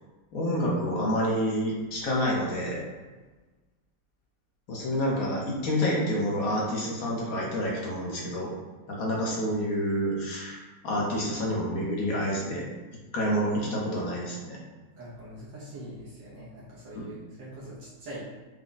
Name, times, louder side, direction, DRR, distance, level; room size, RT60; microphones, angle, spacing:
voice 1, 0.3-2.8 4.7-8.5 8.9-12.6 13.1-14.6 16.9-17.0, equal, 55° left, -3 dB, 1.3 m, -28 dB
voice 2, 15.0-18.2, right 1 dB, 85° right, -7 dB, 1.7 m, -43 dB
5.0 x 2.3 x 3.9 m, 1.3 s
omnidirectional pair, 1.9 m